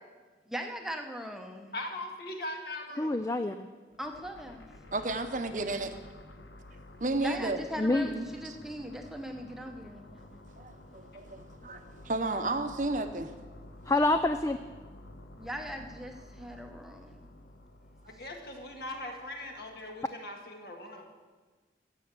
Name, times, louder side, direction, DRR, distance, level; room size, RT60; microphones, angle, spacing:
voice 1, 0.5-1.8 4.0-4.7 7.2-10.0 15.4-17.3, equal, ahead, 3 dB, 0.8 m, -39 dB
voice 2, 1.7-3.3 18.1-21.2, left 1 dB, 55° left, 2 dB, 1.8 m, -40 dB
voice 3, 3.0-3.7 7.8-8.1 13.9-14.6, left 2 dB, 15° left, 9 dB, 0.3 m, -27 dB
sound 1, 3.9-20.1, left 1 dB, 85° left, 0.9 m, -52 dB
voice 4, 4.9-6.0 7.0-7.6 8.1-8.6 10.6-13.3 18.1-18.2, right 2 dB, 45° right, 8 dB, 0.8 m, -33 dB
14.5 x 6.5 x 8.2 m, 1.4 s
head